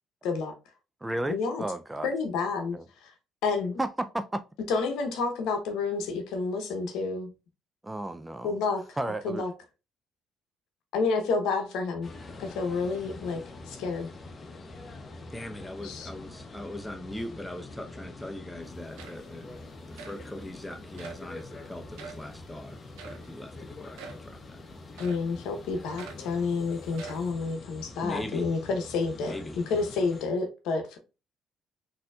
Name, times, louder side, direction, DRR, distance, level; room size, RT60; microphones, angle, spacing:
voice 1, 0.2-0.5 1.3-1.6 2.0-2.8 3.4-3.8 4.7-7.3 8.4-9.0 9.2-9.5 10.9-12.1 12.4-14.1 15.8-16.1 25.0-31.0, left 4 dB, 80° left, 0.8 m, -29 dB
voice 2, 1.0-2.1 2.7-2.8 3.8-4.4 7.8-8.5 9.0-9.4, right 1 dB, 15° right, 0.4 m, -32 dB
sound 1, 12.0-30.2, left 2 dB, 40° left, 0.7 m, -45 dB
voice 3, 15.3-19.5 19.9-22.8 23.0-24.6 24.9-25.1 28.0-28.5 29.2-29.6, left 1 dB, 10° left, 0.7 m, -40 dB
sound 2, 18.6-18.7 19.0-19.5 20.0-20.2 21.0-21.3 22.0-22.3 23.0-23.3 24.0-24.3 25.0-25.3 26.0-26.3 26.9-27.3, right 5 dB, 85° right, 0.6 m, -45 dB
4.0 x 2.7 x 2.3 m
supercardioid pair, 65°, 0 cm